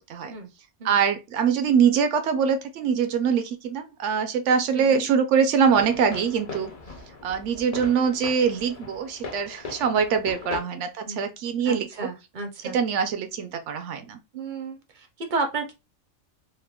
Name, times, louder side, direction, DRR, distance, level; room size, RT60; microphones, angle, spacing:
voice 1, 0.8-6.7 7.2-11.9 12.6-14.2, right 6 dB, 75° right, 0.9 m, -23 dB
voice 2, 4.7-5.1 11.1-11.2 11.7-12.8 14.3-15.7, right 3 dB, 50° right, 0.6 m, -32 dB
sound 1, 5.6-10.6, left 3 dB, 45° left, 0.5 m, -39 dB
3.5 x 2.0 x 2.2 m
omnidirectional pair, 1.3 m